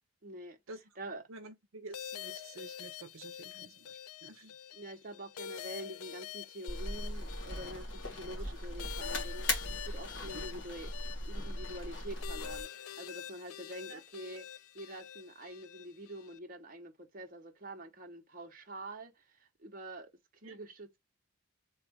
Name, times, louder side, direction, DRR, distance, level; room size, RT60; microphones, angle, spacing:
voice 1, 0.2-0.6 1.0-1.2 4.7-10.9 11.2-14.4 14.7-20.1 20.4-21.0, right 1 dB, 40° right, 0.9 m, -46 dB
voice 2, 1.3-4.5 10.2-10.4 13.9-14.0 20.4-20.6, right 3 dB, 70° right, 0.6 m, -50 dB
sound 1, 1.9-16.4, left 10 dB, 85° left, 0.4 m, -46 dB
sound 2, 6.7-12.6, left 1 dB, 60° left, 1.8 m, -39 dB
3.5 x 2.4 x 4.5 m
head